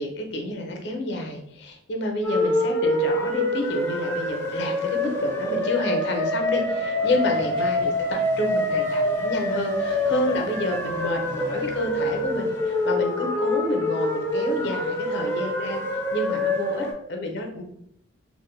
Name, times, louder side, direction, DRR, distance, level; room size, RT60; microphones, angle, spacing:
voice 1, 0.0-15.8 16.1-17.6, left 1 dB, 60° left, 3 dB, 0.5 m, -29 dB
sound 1, 2.2-16.9, left 1 dB, 15° left, 0.3 m, -26 dB
sound 2, 6.5-12.4, right 1 dB, 25° right, 0.6 m, -45 dB
2.5 x 2.0 x 3.1 m, 0.73 s
head